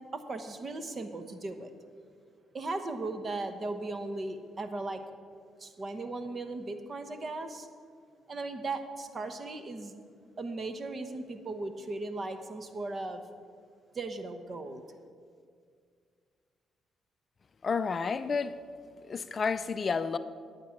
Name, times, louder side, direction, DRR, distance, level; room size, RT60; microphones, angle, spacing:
voice 1, 0.1-1.7 2.5-5.0 5.6-7.7 8.3-9.9 10.4-13.2 13.9-14.8, right 2 dB, 40° right, 1.0 m, -37 dB
voice 2, 17.6-18.6 19.0-20.2, left 5 dB, 40° left, 0.4 m, -30 dB
11.0 x 8.5 x 5.8 m
cardioid pair, 90°, 0 cm